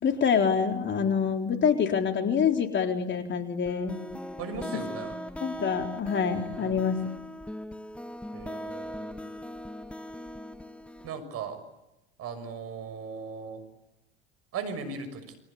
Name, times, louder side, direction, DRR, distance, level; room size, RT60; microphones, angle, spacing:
voice 1, 0.0-4.0 5.4-7.0, left 6 dB, 35° left, 5 dB, 3.9 m, -26 dB
sound 1, 3.6-11.2, equal, 5° left, 1.4 m, -39 dB
voice 2, 4.4-5.1 6.6-6.8 8.3-9.3 11.0-11.6 12.2-13.6 14.5-15.2, right 5 dB, 50° right, 11 dB, 6.2 m, -37 dB
29.5 x 23.5 x 8.6 m, 0.93 s
hypercardioid pair, 80°, 32 cm